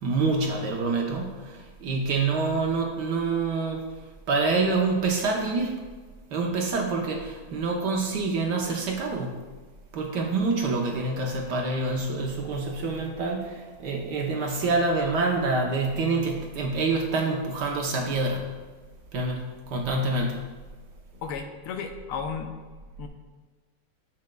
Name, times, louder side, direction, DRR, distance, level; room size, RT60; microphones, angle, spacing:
voice 1, 0.0-3.8 4.3-5.7 6.3-9.4 9.9-18.5 19.1-20.4, right 3 dB, 60° right, 0 dB, 1.2 m, -26 dB
voice 2, 21.2-22.5 23.0-23.1, left 6 dB, 90° left, 6 dB, 1.6 m, -33 dB
9.8 x 7.5 x 2.2 m, 1.4 s
omnidirectional pair, 2.4 m